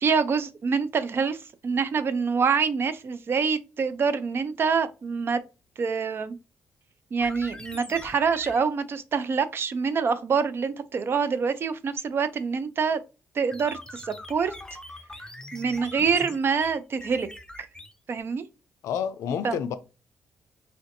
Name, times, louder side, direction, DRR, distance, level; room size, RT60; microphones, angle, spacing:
voice 1, 0.0-5.4 5.8-6.4 7.1-13.0 13.4-14.5 15.5-17.3 17.6-17.7 18.1-18.4 19.4-19.6, right 5 dB, 50° right, 0.4 m, -26 dB
sound 1, 7.2-8.7 13.5-18.2, left 1 dB, 15° left, 0.6 m, -42 dB
voice 2, 18.8-19.7, left 8 dB, 80° left, 0.4 m, -29 dB
3.3 x 2.5 x 2.6 m
supercardioid pair, 60°, 5 cm